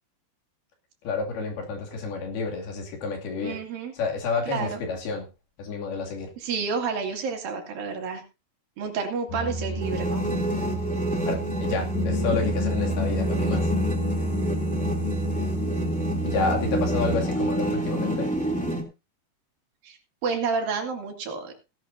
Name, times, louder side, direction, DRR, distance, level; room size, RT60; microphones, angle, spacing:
voice 1, 1.0-3.6 3.9-5.3 5.6-6.3 11.3-13.7 16.2-18.3, left 4 dB, 70° left, 1 dB, 4.5 m, -30 dB
voice 2, 3.4-3.9 4.4-4.8 6.4-8.2 8.8-10.2 19.8-21.5, right 5 dB, 65° right, 4 dB, 3.8 m, -30 dB
sound 1, 9.3-17.3, equal, 55° left, 2.6 m, -29 dB
sound 2, 9.8-18.8, right 1 dB, 5° left, 1.8 m, -28 dB
17.5 x 11.5 x 2.7 m, 0.28 s
omnidirectional pair, 4.6 m